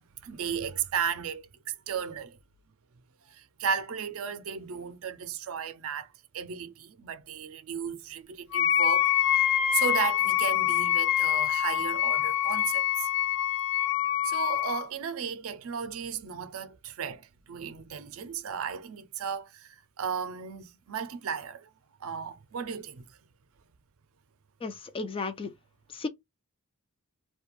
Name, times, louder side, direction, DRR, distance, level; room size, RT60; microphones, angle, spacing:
voice 1, 0.2-2.4 3.3-9.4 9.7-13.1 14.2-21.7 22.0-23.1, right 7 dB, 70° right, 0.5 m, -35 dB
Wind instrument woodwind instrument, 8.5-14.8, left 12 dB, 85° left, 0.6 m, -25 dB
voice 2, 24.6-25.5 25.9-26.1, left 3 dB, 25° left, 0.3 m, -34 dB
2.4 x 2.2 x 2.9 m
head